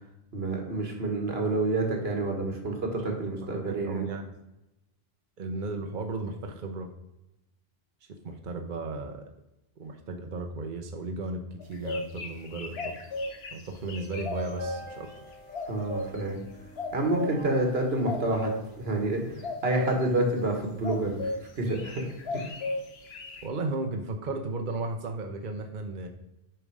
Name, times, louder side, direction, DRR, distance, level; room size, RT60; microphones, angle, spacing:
voice 1, 0.3-4.1 15.7-16.4 16.9-21.3 21.6-22.0 22.3-22.5, right 2 dB, 80° right, 2 dB, 1.8 m, -28 dB
voice 2, 3.4-4.4 5.4-6.9 8.2-9.3 9.8-12.9 13.5-15.1 23.4-26.1, right 3 dB, 55° right, 4 dB, 0.9 m, -35 dB
sound 1, 11.6-14.8 15.5-16.2 16.8-17.3 18.1-18.6 19.4-20.1 20.8-21.4 21.7-23.5, left 2 dB, 80° left, 1.2 m, -35 dB
sound 2, 14.0-19.3, left 2 dB, 10° left, 1.6 m, -45 dB
9.1 x 5.3 x 4.8 m, 0.93 s
omnidirectional pair, 1.0 m